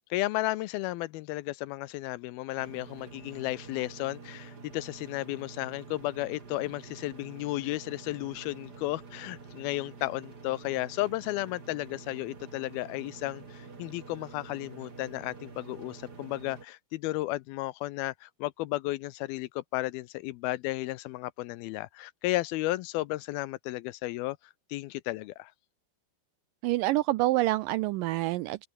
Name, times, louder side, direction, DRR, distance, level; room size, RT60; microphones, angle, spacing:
voice 1, 0.0-24.4 24.7-25.5, left 18 dB, 85° left, 2.5 m, -33 dB
sound 1, 2.6-16.7, right 4 dB, 30° right, 3.0 m, -48 dB
voice 2, 26.6-28.7, right 17 dB, 80° right, 2.0 m, -27 dB
open air
omnidirectional pair, 4.4 m